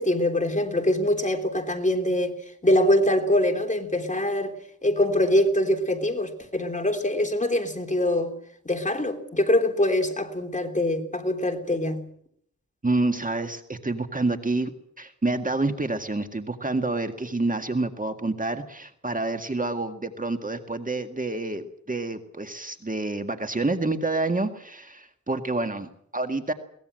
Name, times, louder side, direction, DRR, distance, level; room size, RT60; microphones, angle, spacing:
voice 1, 0.0-2.4 2.6-4.5 4.8-8.3 8.6-12.1, left 1 dB, 25° left, 3.3 m, -23 dB
voice 2, 12.8-14.7 15.0-26.5, right 2 dB, 25° right, 1.9 m, -28 dB
23.0 x 19.0 x 7.7 m
wide cardioid pair, 75°, 29 cm